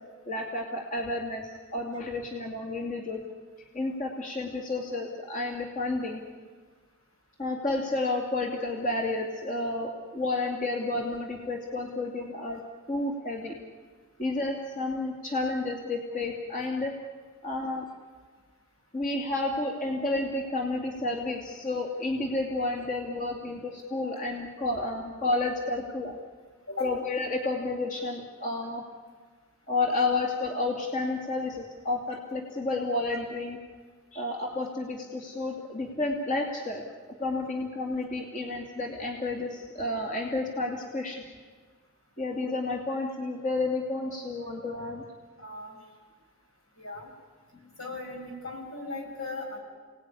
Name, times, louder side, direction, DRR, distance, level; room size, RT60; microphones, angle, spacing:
voice 1, 0.3-3.2 3.7-6.2 7.4-12.6 12.9-13.5 14.2-16.9 17.4-17.9 18.9-26.2 26.8-28.8 29.7-33.6 34.1-36.8 37.2-41.2 42.2-45.0, left 2 dB, 35° left, 1 dB, 2.6 m, -31 dB
voice 2, 45.4-45.8 46.8-47.1 47.8-49.6, left 2 dB, 80° left, 1 dB, 7.4 m, -37 dB
29.0 x 19.0 x 10.0 m, 1.5 s
head